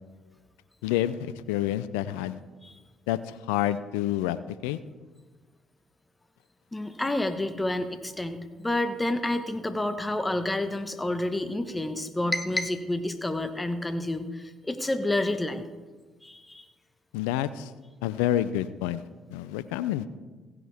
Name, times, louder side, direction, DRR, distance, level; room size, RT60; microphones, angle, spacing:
voice 1, 0.8-2.4 3.1-4.4 4.6-4.8 17.1-17.7 18.0-19.0 19.3-20.1, left 12 dB, 85° left, 15 dB, 0.4 m, -28 dB
voice 2, 6.7-15.6 16.2-16.7, left 1 dB, 15° left, 9 dB, 1.2 m, -29 dB
16.0 x 10.5 x 3.5 m, 1.3 s
hypercardioid pair, 60°, 0 cm